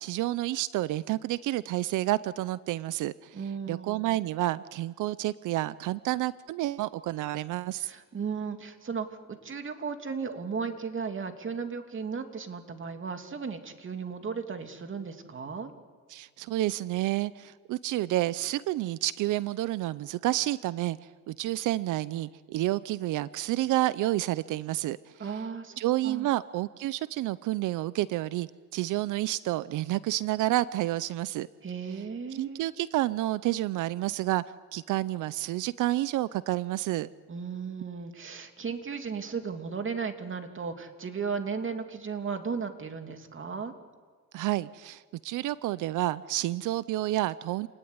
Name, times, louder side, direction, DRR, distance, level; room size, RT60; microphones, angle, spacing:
voice 1, 0.0-3.4 3.7-7.9 16.1-21.0 21.3-25.0 25.8-31.5 32.3-34.4 34.7-37.1 44.3-47.7, right 16 dB, 85° right, 17 dB, 0.7 m, -29 dB
voice 2, 3.3-4.2 7.8-15.7 25.2-26.3 31.6-32.6 37.3-43.7, right 5 dB, 40° right, 6 dB, 2.8 m, -35 dB
28.0 x 19.0 x 9.6 m, 1.5 s
cardioid pair, 90°, 30 cm